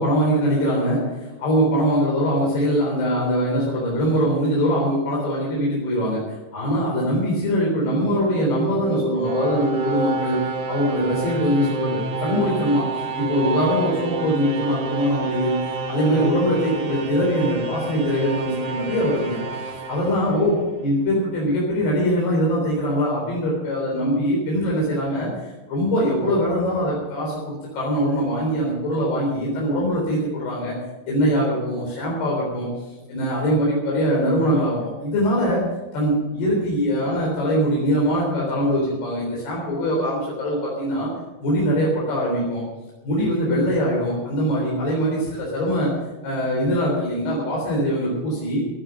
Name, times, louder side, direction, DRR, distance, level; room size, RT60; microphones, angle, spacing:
voice 1, 0.0-10.4 10.7-15.6 15.9-30.8 31.1-32.7 33.1-35.7 35.9-41.1 41.4-42.6 43.0-45.9 46.2-48.7, equal, 60° left, -4 dB, 5.8 m, -22 dB
sound 1, 7.8-20.8, right 3 dB, 50° right, 2.9 m, -29 dB
17.5 x 10.5 x 6.6 m, 1.2 s
omnidirectional pair, 5.2 m